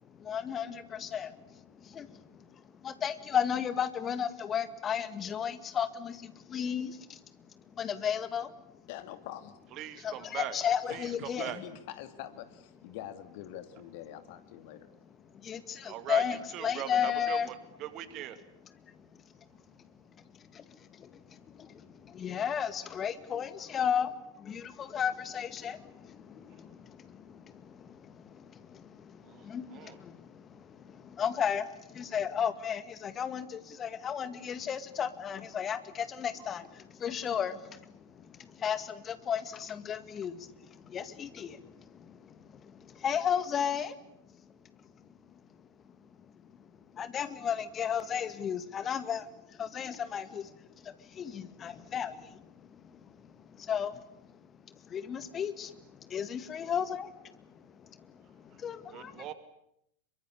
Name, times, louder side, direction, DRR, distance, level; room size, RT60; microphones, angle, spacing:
voice 1, 0.0-8.8 10.0-11.5 15.2-17.5 18.7-19.5 19.8-44.0 44.3-57.1 58.4-59.3, left 8 dB, 25° left, 12 dB, 2.0 m, -35 dB
voice 2, 8.9-9.6 10.8-14.9, left 11 dB, 50° left, 10 dB, 2.5 m, -45 dB
voice 3, 9.8-10.5 10.9-11.6 15.8-16.2 16.5-17.5 17.8-18.4 29.2-30.0 58.9-59.3, right 12 dB, 35° right, 11 dB, 2.3 m, -40 dB
26.5 x 23.5 x 8.5 m, 0.77 s
figure-of-eight pair, 90°, 0 cm